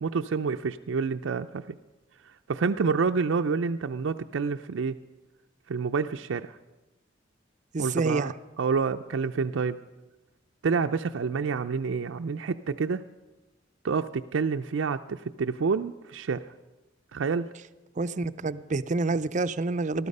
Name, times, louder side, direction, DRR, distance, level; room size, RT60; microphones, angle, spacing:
voice 1, 0.0-1.6 2.5-5.0 5.7-6.6 7.8-8.3 8.6-9.8 10.6-13.0 13.8-16.4 17.1-17.5, right 5 dB, 85° right, 7 dB, 0.5 m, -28 dB
voice 2, 7.7-8.3 18.0-20.1, right 3 dB, 40° right, 13 dB, 0.5 m, -28 dB
19.5 x 13.0 x 5.4 m, 1.1 s
head